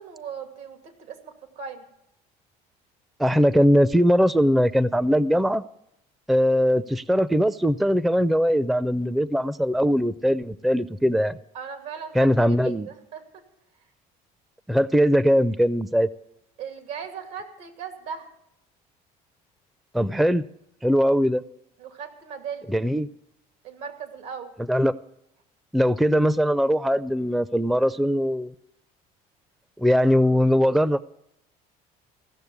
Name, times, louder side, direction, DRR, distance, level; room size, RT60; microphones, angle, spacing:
voice 1, 0.0-1.8 11.5-12.3 12.6-13.2 16.6-18.3 21.8-22.7 23.6-24.5, right 7 dB, 80° right, 2.5 m, -37 dB
voice 2, 3.2-5.6 6.3-11.4 12.1-12.9 14.7-16.1 19.9-20.4 20.8-21.4 22.7-23.1 24.7-25.0 25.7-28.5 29.8-31.0, equal, ahead, 0.4 m, -20 dB
16.0 x 6.7 x 9.5 m
supercardioid pair, 85°, 18 cm